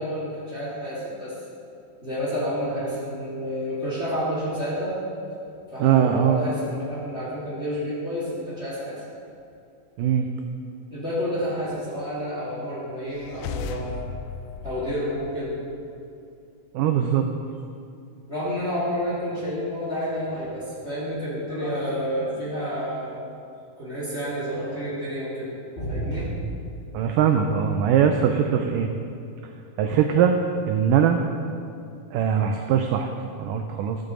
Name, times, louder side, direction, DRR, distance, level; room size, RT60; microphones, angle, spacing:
voice 1, 0.0-1.3 2.0-5.0 5.7-9.0 10.9-14.0 14.6-15.6 18.3-23.2 23.8-26.4, equal, 25° left, -9 dB, 1.8 m, -29 dB
voice 2, 5.8-6.5 10.0-10.3 16.7-17.3 26.9-28.9 29.8-30.4 30.7-31.2 32.1-34.0, right 8 dB, 85° right, 5 dB, 1.9 m, -21 dB
sound 1, 13.1-15.9, left 6 dB, 80° left, 2.2 m, -36 dB
14.0 x 6.8 x 3.8 m, 2.5 s
omnidirectional pair, 4.3 m